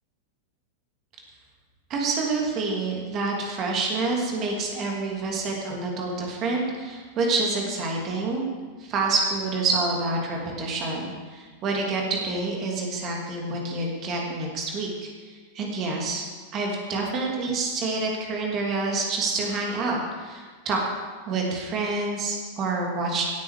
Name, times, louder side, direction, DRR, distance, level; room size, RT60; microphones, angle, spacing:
voice 1, 1.9-8.4 8.8-14.9 15.5-16.2 16.5-20.8 21.3-23.2, right 3 dB, 35° right, -1 dB, 3.0 m, -27 dB
17.0 x 8.9 x 5.1 m, 1.5 s
figure-of-eight pair, 90°, 0 cm